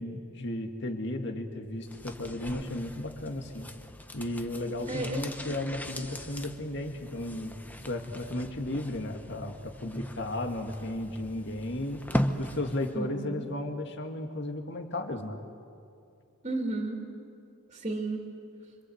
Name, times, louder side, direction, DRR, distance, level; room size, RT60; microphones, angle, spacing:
voice 1, 0.0-3.7 4.1-7.6 7.9-12.0 12.4-15.5, left 1 dB, 50° left, 3 dB, 2.2 m, -34 dB
sound 1, 1.8-13.0 13.3-13.4, equal, 10° left, 0.9 m, -38 dB
voice 2, 4.9-5.5 12.9-13.5 16.4-17.0 17.7-18.2, right 2 dB, 30° right, 1 dB, 2.7 m, -33 dB
26.5 x 26.0 x 8.0 m, 2.6 s
head